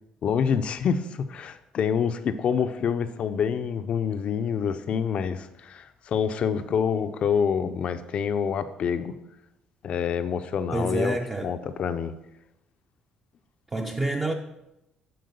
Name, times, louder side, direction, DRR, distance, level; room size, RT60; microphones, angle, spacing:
voice 1, 0.2-9.1 9.8-11.2 11.4-12.1, left 7 dB, 50° left, 0.5 m, -27 dB
voice 2, 10.7-11.5 13.7-14.3, right 2 dB, 15° right, 0.5 m, -28 dB
7.7 x 4.6 x 6.7 m
cardioid pair, 120°, 2 cm